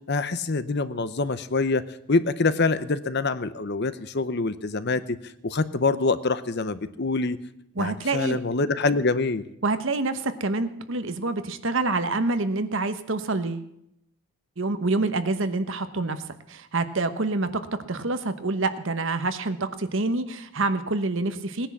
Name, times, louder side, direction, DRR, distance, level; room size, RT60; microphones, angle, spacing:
voice 1, 0.1-1.8 2.1-5.2 5.4-7.4 7.8-9.4, left 3 dB, 50° left, 13 dB, 0.7 m, -25 dB
voice 2, 7.8-8.4 9.6-13.7 14.6-17.5 17.9-21.7, right 3 dB, 60° right, 10 dB, 1.0 m, -27 dB
18.0 x 10.0 x 7.3 m, 0.79 s
head